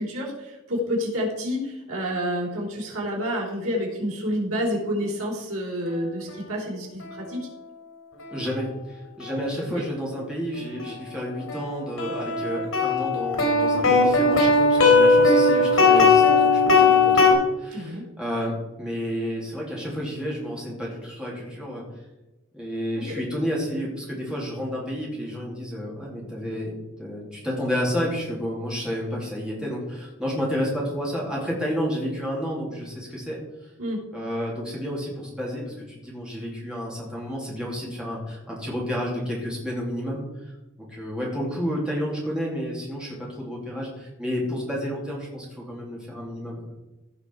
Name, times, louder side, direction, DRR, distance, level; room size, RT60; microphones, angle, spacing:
voice 1, 0.0-7.5 17.7-18.0 22.9-23.2 33.8-34.0, equal, 90° right, -2 dB, 3.6 m, -29 dB
voice 2, 8.3-21.8 22.5-33.7 34.1-40.3 40.8-46.6, equal, 5° right, -4 dB, 2.8 m, -31 dB
sound 1, 10.8-10.9 11.5-17.3, left 3 dB, 80° left, 3.6 m, -18 dB
16.0 x 5.8 x 4.7 m, 1.0 s
head